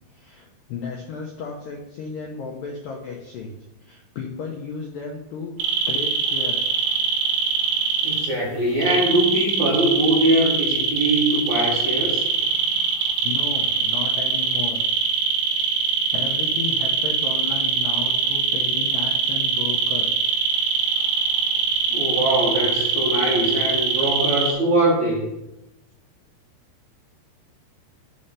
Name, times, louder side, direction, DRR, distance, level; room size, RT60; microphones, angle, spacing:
voice 1, 0.1-3.5 3.8-5.6 5.9-6.8 13.2-14.8 16.1-20.3, left 6 dB, 80° left, 0 dB, 2.0 m, -34 dB
sound 1, 5.6-8.3 8.8-24.5, right 4 dB, 80° right, 3.1 m, -23 dB
voice 2, 8.0-12.2 21.9-25.3, right 1 dB, 60° right, -5 dB, 2.0 m, -22 dB
7.3 x 4.2 x 6.6 m, 0.94 s
omnidirectional pair, 4.9 m